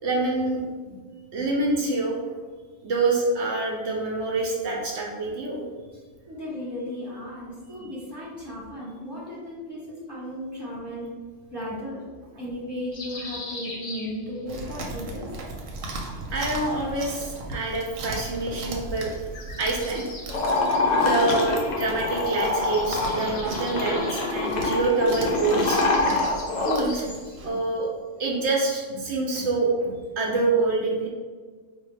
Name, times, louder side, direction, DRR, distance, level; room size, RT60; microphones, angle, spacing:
voice 1, 0.0-0.6 0.9-1.0 1.3-2.1 2.8-5.6 7.8-7.9 16.3-19.1 19.6-20.0 21.0-26.2 26.5-27.9 28.2-31.1, right 3 dB, 65° right, -2 dB, 0.9 m, -26 dB
voice 2, 6.3-11.1 11.5-12.0 12.4-15.3, left 1 dB, 20° left, -8 dB, 0.8 m, -35 dB
sound 1, 12.9-14.7 16.1-17.1 19.1-22.0 22.3-27.5, left 2 dB, 50° left, 0.8 m, -42 dB
Chewing mastication, 14.5-27.5, right 2 dB, 85° right, 1.0 m, -37 dB
sound 2, 20.3-26.8, left 3 dB, 70° left, 0.4 m, -25 dB
4.2 x 2.2 x 3.2 m, 1.5 s
omnidirectional pair, 1.3 m